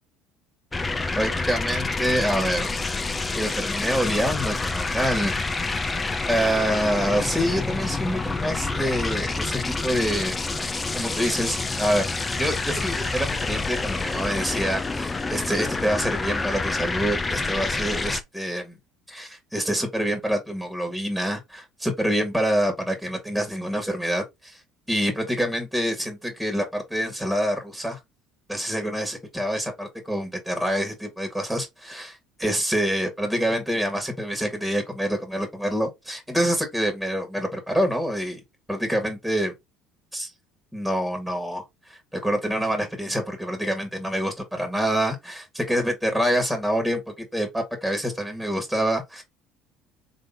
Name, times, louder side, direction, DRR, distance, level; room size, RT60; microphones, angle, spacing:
sound 1, 0.7-18.2, left 3 dB, 20° left, 0.7 m, -28 dB
voice 1, 1.1-2.7 3.3-5.9 6.3-10.4 10.9-12.1 12.4-18.8 19.1-24.6 24.9-28.0 28.5-38.4 38.7-39.5 40.1-40.3 40.7-49.2, equal, ahead, 1.8 m, -26 dB
3.9 x 3.2 x 4.0 m
hypercardioid pair, 65°, 0 cm